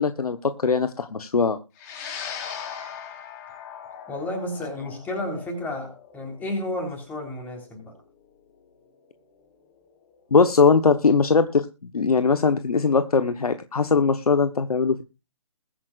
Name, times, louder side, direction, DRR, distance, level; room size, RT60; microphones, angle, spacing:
voice 1, 0.0-1.6 10.3-15.0, left 5 dB, 90° left, 9 dB, 1.1 m, -20 dB
sound 1, 1.8-10.3, left 7 dB, 30° left, 3.5 m, -40 dB
voice 2, 4.1-7.9, left 1 dB, 10° left, 2 dB, 3.6 m, -32 dB
21.5 x 8.9 x 2.4 m, 0.28 s
hypercardioid pair, 150°, 19 cm